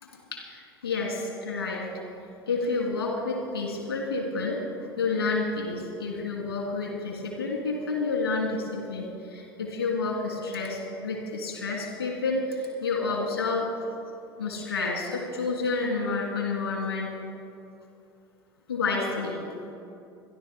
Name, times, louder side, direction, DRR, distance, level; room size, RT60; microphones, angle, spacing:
voice 1, 0.0-1.9 2.5-4.6 5.0-13.7 14.4-17.2 18.7-19.4, left 3 dB, 80° left, 0 dB, 3.2 m, -29 dB
25.5 x 11.5 x 3.8 m, 2.8 s
figure-of-eight pair, 70°, 13 cm